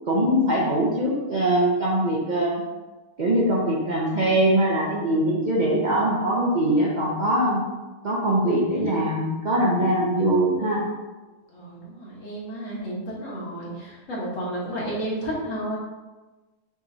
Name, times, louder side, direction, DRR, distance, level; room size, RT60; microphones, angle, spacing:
voice 1, 0.1-2.6 3.2-7.6 8.0-10.8, right 1 dB, 50° right, -6 dB, 0.6 m, -22 dB
voice 2, 11.5-15.8, right 1 dB, 55° left, -6 dB, 1.6 m, -32 dB
5.8 x 3.1 x 2.7 m, 1.2 s
omnidirectional pair, 1.6 m